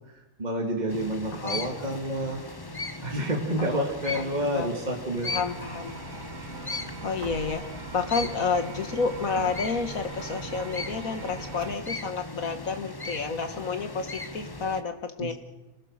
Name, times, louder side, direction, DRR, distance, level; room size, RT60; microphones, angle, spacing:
voice 1, 0.4-2.4 3.0-5.3 15.2-15.3, right 1 dB, 30° right, 0 dB, 2.6 m, -29 dB
sound 1, 0.9-14.8, left 2 dB, 20° left, 0.8 m, -38 dB
voice 2, 1.3-1.7 3.7-4.7 5.2-6.0 7.0-15.3, left 5 dB, 70° left, 7 dB, 2.1 m, -30 dB
sound 2, 5.3-11.7, right 5 dB, 65° right, 2.0 m, -41 dB
27.0 x 20.5 x 6.7 m, 1.0 s
omnidirectional pair, 1.5 m